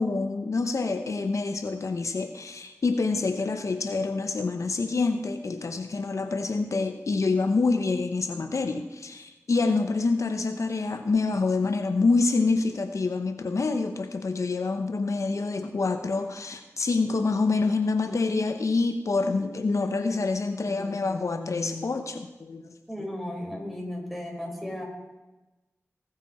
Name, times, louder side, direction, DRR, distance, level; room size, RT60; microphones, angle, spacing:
voice 1, 0.0-23.1, left 3 dB, 65° left, 7 dB, 0.8 m, -27 dB
voice 2, 22.9-24.8, left 1 dB, ahead, 0 dB, 4.6 m, -35 dB
18.5 x 8.9 x 4.3 m, 1.1 s
cardioid pair, 45°, 6 cm